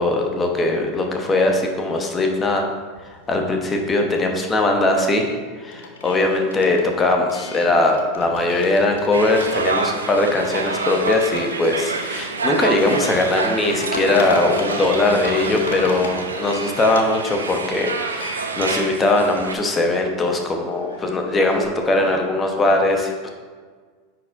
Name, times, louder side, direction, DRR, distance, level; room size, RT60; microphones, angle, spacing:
voice 1, 0.0-2.6 3.0-5.3 5.6-23.3, left 2 dB, 20° left, 2 dB, 1.0 m, -20 dB
sound 1, 2.8-4.1 4.4-21.7, left 3 dB, 70° left, 0.7 m, -38 dB
sound 2, 9.1-19.5, right 4 dB, 80° right, 0.5 m, -27 dB
9.6 x 4.3 x 2.6 m, 1.5 s
figure-of-eight pair, 85°, 0 cm